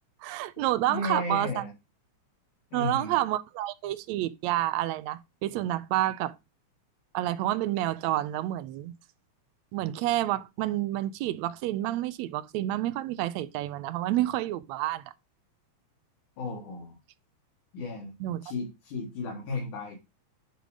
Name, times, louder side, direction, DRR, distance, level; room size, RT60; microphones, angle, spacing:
voice 1, 0.2-1.6 2.7-6.4 7.1-8.9 9.7-15.0 18.2-18.4, right 14 dB, 75° right, 1.8 m, -29 dB
voice 2, 0.9-1.7 2.7-3.2 16.4-17.0 17.7-20.0, left 3 dB, 85° left, 3.7 m, -34 dB
10.0 x 3.8 x 5.0 m
omnidirectional pair, 3.4 m